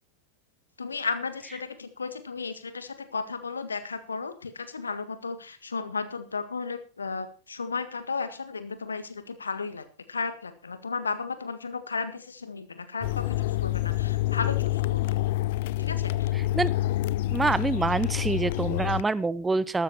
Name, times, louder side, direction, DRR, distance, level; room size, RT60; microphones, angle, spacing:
voice 1, 0.8-15.2 15.8-16.3, left 4 dB, 75° left, 12 dB, 1.7 m, -34 dB
sound 1, 13.0-19.0, left 15 dB, 50° left, 0.6 m, -27 dB
voice 2, 17.3-19.8, right 3 dB, 10° right, 19 dB, 0.5 m, -26 dB
13.5 x 12.5 x 4.3 m, 0.35 s
figure-of-eight pair, 90°, 0 cm